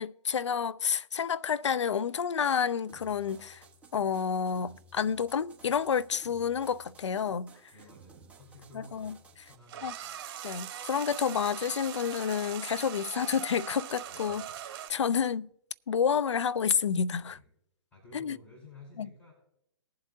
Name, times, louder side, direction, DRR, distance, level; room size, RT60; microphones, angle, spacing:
voice 1, 0.0-3.6 3.9-7.5 8.7-9.2 9.8-9.9 10.4-14.5 14.9-15.5 15.9-17.4 18.1-18.4 19.0-19.1, left 7 dB, 90° left, 0.4 m, -29 dB
sound 1, 2.9-9.5, right 3 dB, 10° right, 1.3 m, -56 dB
voice 2, 7.7-10.2 14.1-14.4 17.3-17.5 17.9-19.3, left 2 dB, 15° left, 5.0 m, -53 dB
sound 2, 9.7-14.9, right 10 dB, 50° right, 1.6 m, -41 dB
20.0 x 7.5 x 2.8 m
hypercardioid pair, 130°, 15 cm